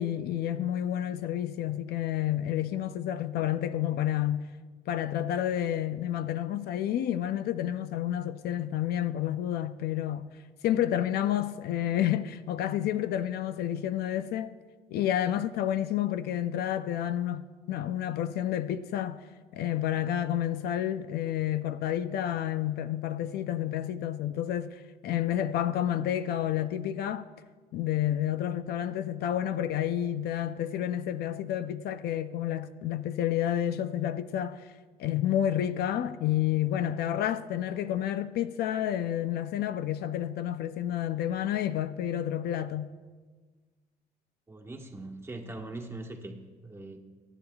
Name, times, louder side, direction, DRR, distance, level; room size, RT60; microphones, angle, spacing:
voice 1, 0.0-4.5 4.9-10.3 10.6-14.5 14.9-19.2 19.5-27.3 27.7-34.7 35.0-42.9, left 11 dB, 70° left, 0.5 m, -30 dB
voice 2, 44.5-46.3 46.6-47.0, right 2 dB, 15° right, 1.4 m, -41 dB
22.0 x 9.9 x 2.4 m
cardioid pair, 110°, 17 cm